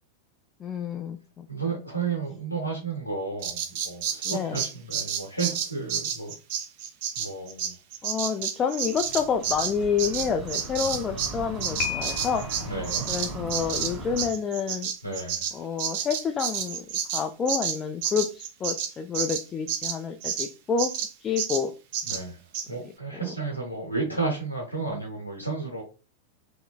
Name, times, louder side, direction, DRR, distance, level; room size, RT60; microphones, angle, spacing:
voice 1, 0.6-1.5 4.2-4.6 8.0-12.4 13.1-14.9 15.5-16.9 17.1-20.9 21.2-21.7 23.2-23.3, left 6 dB, 25° left, 0.3 m, -28 dB
voice 2, 1.5-6.3 7.1-7.7 12.6-13.1 15.0-15.5 22.1-22.4 22.7-25.8, right 4 dB, 90° left, 0.8 m, -32 dB
Bird vocalization bird call bird song, 3.4-11.3 11.6-20.5 20.8-21.1 21.4-21.6 21.9-22.2 22.5-22.7, right 8 dB, 45° right, 0.5 m, -30 dB
sound 1, 8.8-14.3, right 1 dB, 30° right, 1.7 m, -38 dB
Piano, 11.8-12.7, left 9 dB, 45° left, 0.8 m, -33 dB
3.7 x 3.0 x 2.3 m
figure-of-eight pair, 90°, 0 cm